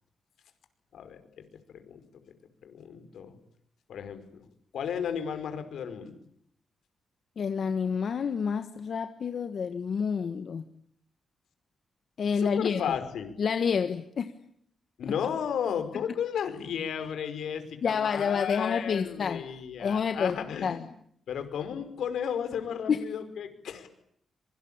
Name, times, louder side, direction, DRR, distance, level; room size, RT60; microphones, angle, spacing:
voice 1, 0.9-1.4 1.7-2.3 2.6-3.4 3.9-4.4 4.7-6.1 12.3-13.3 15.0-20.9 21.3-23.9, left 8 dB, 80° left, 9 dB, 5.1 m, -34 dB
voice 2, 7.4-10.7 12.2-12.8 13.4-14.3 15.0-15.1 17.8-19.4 19.8-20.4 20.6-20.8 22.9-23.0, left 6 dB, 50° left, 9 dB, 1.5 m, -28 dB
26.0 x 24.0 x 8.8 m, 0.68 s
wide cardioid pair, 140°, 0 cm